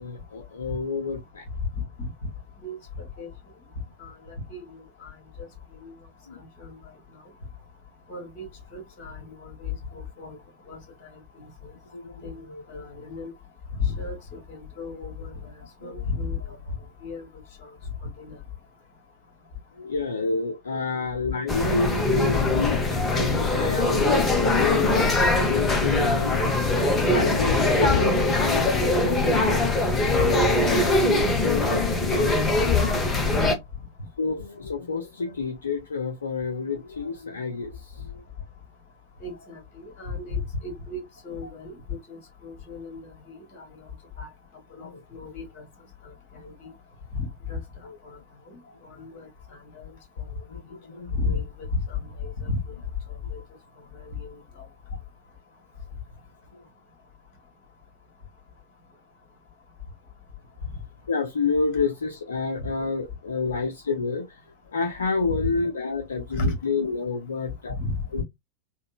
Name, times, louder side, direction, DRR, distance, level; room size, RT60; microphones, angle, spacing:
voice 1, 0.0-1.5 6.3-6.4 11.9-12.2 12.5-12.8 15.8-15.9 19.8-26.5 27.1-33.0 34.2-38.2 44.8-45.0 46.4-46.5 47.8-48.0 50.5-51.1 61.1-64.4 64.7-67.7 68.1-68.2, left 4 dB, 70° left, 0.4 m, -29 dB
voice 2, 4.5-5.1 5.8-5.9 6.6-6.7 8.1-8.5 8.7-10.4 10.7-10.8 12.2-12.4 12.7-13.3 13.8-14.1 14.5-15.3 15.8-16.4 17.0-17.2 18.2-18.4 30.2-30.3 39.2-41.7 42.1-43.0 43.3-43.7 44.2-44.3 44.7-45.6 46.6-46.7 47.1-47.6 48.5-48.6 48.9-49.3 51.1-52.6 53.3-53.4 65.3-65.4 66.3-66.5 67.7-68.0, left 3 dB, 45° left, 1.4 m, -32 dB
sound 1, 21.5-33.5, left 2 dB, 15° left, 0.7 m, -22 dB
3.6 x 2.0 x 2.2 m
figure-of-eight pair, 90°, 0 cm